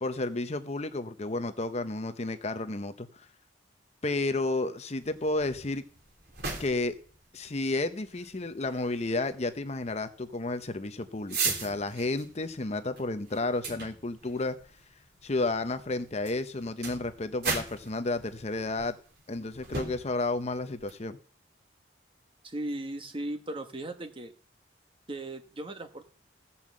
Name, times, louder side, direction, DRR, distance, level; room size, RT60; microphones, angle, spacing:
voice 1, 0.0-3.2 4.0-5.8 6.6-7.0 7.3-14.6 15.2-18.9 19.3-21.2, left 2 dB, 35° left, 10 dB, 0.7 m, -32 dB
sound 1, 5.0-20.9, right 4 dB, 55° right, 3.2 m, -40 dB
voice 2, 22.4-24.3 25.1-26.0, right 1 dB, 30° right, 7 dB, 1.2 m, -37 dB
15.5 x 5.6 x 7.5 m, 0.43 s
head